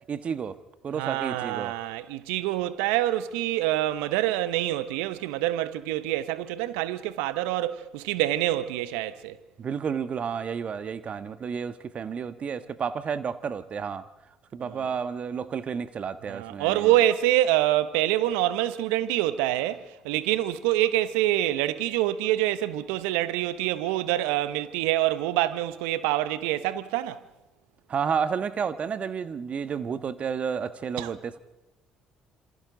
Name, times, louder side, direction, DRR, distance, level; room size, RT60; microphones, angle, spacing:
voice 1, 0.1-0.6 0.8-1.7 9.6-14.1 14.5-16.9 27.9-31.4, right 6 dB, 45° right, 1.3 m, -31 dB
voice 2, 0.9-9.4 14.6-14.9 16.3-27.2 31.0-31.1, right 14 dB, 75° right, 1.0 m, -26 dB
27.0 x 26.0 x 3.9 m
hypercardioid pair, 55°, 3 cm